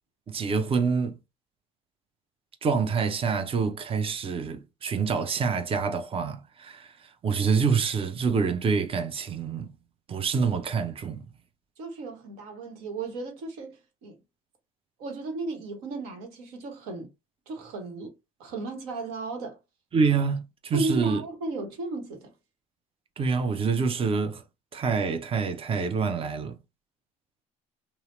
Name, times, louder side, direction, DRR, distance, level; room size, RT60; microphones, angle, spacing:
voice 1, 0.3-1.2 2.6-9.7 10.1-11.3 19.9-21.2 23.2-24.4 24.7-26.6, right 5 dB, 35° right, 0.6 m, -26 dB
voice 2, 11.8-14.2 15.0-17.1 17.5-18.1 18.4-19.6 20.7-22.3, right 3 dB, 75° right, 1.0 m, -35 dB
2.8 x 2.0 x 3.1 m
hypercardioid pair, 65°, 17 cm